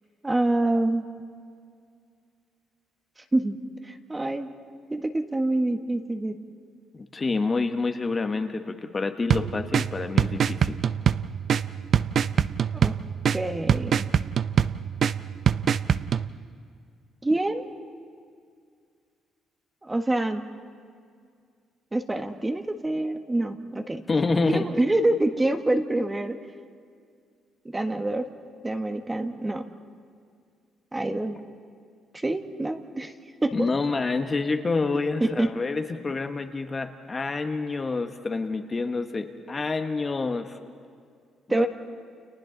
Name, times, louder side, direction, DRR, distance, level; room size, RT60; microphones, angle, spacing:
voice 1, 0.2-1.0 3.3-3.6 3.8-4.5 4.9-6.3 12.7-12.9 13.3-14.1 17.2-17.6 19.8-20.4 21.9-24.0 24.5-26.4 27.7-28.3 28.6-29.7 30.9-31.4 32.1-33.1 33.4-33.7 35.2-35.5 41.5-41.7, right 2 dB, 15° right, 6 dB, 1.4 m, -26 dB
voice 2, 6.9-10.7 24.1-24.7 33.5-40.6 41.5-41.7, left 3 dB, 30° left, 6 dB, 1.2 m, -28 dB
sound 1, 9.3-16.3, right 8 dB, 55° right, 0.5 m, -25 dB
30.0 x 29.0 x 4.0 m, 2.2 s
cardioid pair, 105°, 0 cm